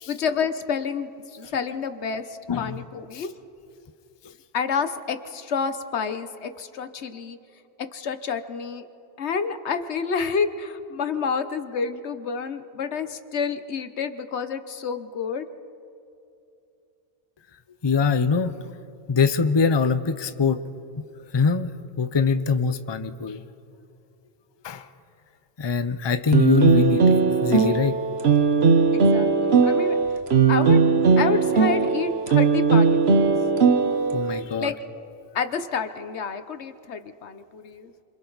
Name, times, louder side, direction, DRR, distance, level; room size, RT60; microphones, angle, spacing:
voice 1, 0.1-3.3 4.5-7.4 7.8-8.9 9.2-15.5 28.9-30.0 30.5-30.8 31.2-33.3 34.6-34.8 35.3-37.9, left 6 dB, 85° left, 10 dB, 1.2 m, -29 dB
voice 2, 2.5-2.8 3.1-3.3 17.8-18.6 19.1-20.6 21.0-21.1 21.3-21.7 22.0-23.4 24.6-24.9 25.6-27.1 27.4-28.0 34.1-34.7, left 5 dB, 30° left, 10 dB, 0.6 m, -23 dB
sound 1, 26.3-34.4, right 5 dB, 70° right, 1.3 m, -19 dB
27.5 x 26.5 x 4.0 m, 2.7 s
omnidirectional pair, 1.1 m